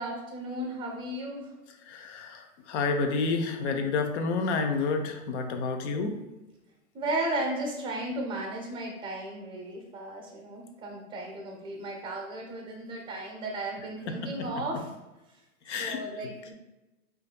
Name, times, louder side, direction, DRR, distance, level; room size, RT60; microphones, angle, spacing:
voice 1, 0.0-1.5 6.9-14.9 15.8-16.5, right 1 dB, 10° right, 0 dB, 0.8 m, -35 dB
voice 2, 1.9-6.2 14.1-14.5 15.7-16.0, left 4 dB, 55° left, 5 dB, 0.6 m, -29 dB
4.9 x 2.7 x 2.2 m, 1.0 s
hypercardioid pair, 130°, 43 cm